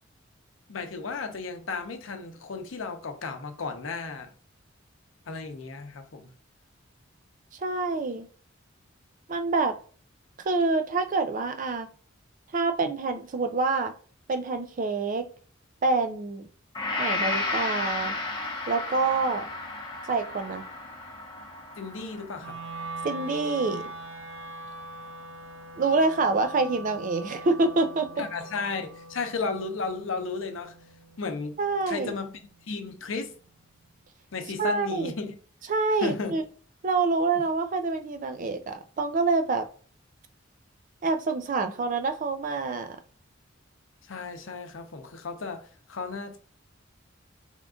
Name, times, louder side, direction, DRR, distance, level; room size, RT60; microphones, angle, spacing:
voice 1, 0.7-4.3 5.3-6.3 21.8-22.6 28.2-30.7 31.2-31.6 31.9-32.4 32.7-33.3 34.3-35.4 36.0-36.4 37.3-37.4 44.0-46.4, left 4 dB, 80° left, 0.7 m, -34 dB
voice 2, 7.6-8.3 9.3-9.8 10.4-11.9 12.5-13.9 14.3-15.3 15.8-16.5 17.0-18.1 18.7-19.5 20.1-20.6 23.0-23.9 25.8-28.2 31.6-32.1 34.6-35.1 35.7-36.4 36.8-39.6 41.0-43.0, right 3 dB, 40° right, 0.4 m, -26 dB
Gong, 16.7-24.8, left 2 dB, 25° left, 0.8 m, -34 dB
Wind instrument woodwind instrument, 22.4-32.6, right 2 dB, 75° right, 0.7 m, -42 dB
3.5 x 2.5 x 3.6 m
head